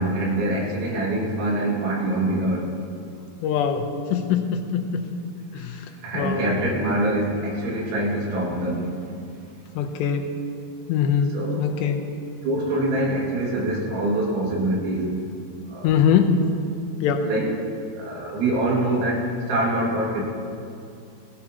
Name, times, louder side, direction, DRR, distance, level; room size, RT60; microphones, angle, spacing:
voice 1, 0.0-2.7 5.5-8.9 11.3-11.9 12.4-15.1 15.7-16.0 17.2-17.5 18.0-20.2, right 1 dB, 85° right, -3 dB, 4.5 m, -25 dB
voice 2, 3.4-5.0 5.5-5.7 6.1-6.4 9.8-10.3 10.9-11.3 11.6-12.0 15.8-16.4 17.0-17.3, left 8 dB, 80° left, 5 dB, 2.8 m, -22 dB
17.5 x 16.0 x 2.9 m, 2.5 s
omnidirectional pair, 5.3 m